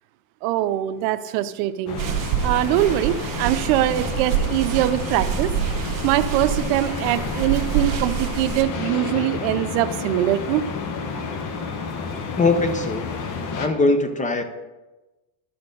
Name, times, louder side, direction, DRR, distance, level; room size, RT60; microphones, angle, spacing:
voice 1, 0.4-2.0 2.4-5.5 6.0-10.6, right 13 dB, 75° right, 12 dB, 0.7 m, -22 dB
sound 1, 1.9-13.7, left 5 dB, 45° left, 1.0 m, -31 dB
sound 2, 2.0-8.6, right 9 dB, 45° right, 1.1 m, -27 dB
voice 2, 12.4-13.1 13.6-14.4, left 3 dB, 20° left, 8 dB, 0.5 m, -20 dB
12.5 x 4.4 x 5.1 m, 1.1 s
cardioid pair, 135°, 43 cm